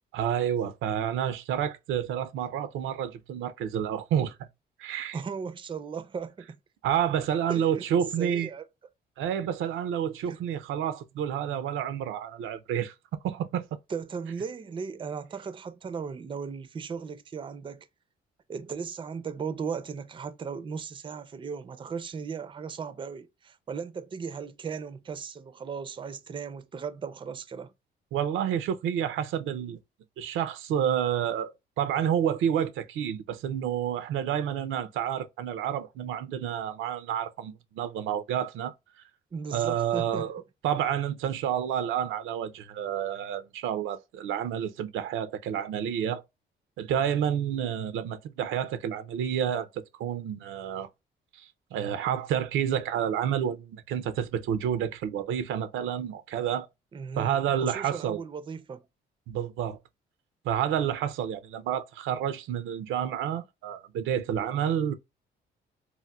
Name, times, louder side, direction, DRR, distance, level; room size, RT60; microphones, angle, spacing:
voice 1, 0.1-4.4 4.8-5.2 6.8-8.5 9.2-12.9 13.2-13.7 28.1-29.8 30.2-31.5 31.8-38.7 39.5-46.2 46.8-50.9 51.3-56.7 57.2-58.2 59.3-59.8 60.4-64.9, right 9 dB, 80° right, 0.5 m, -29 dB
voice 2, 5.1-6.6 7.5-7.8 8.2-8.6 10.3-10.4 13.9-17.9 18.5-27.7 39.3-40.3 56.9-58.8, right 6 dB, 25° right, 0.4 m, -37 dB
4.0 x 2.1 x 2.2 m
cardioid pair, 90°, 20 cm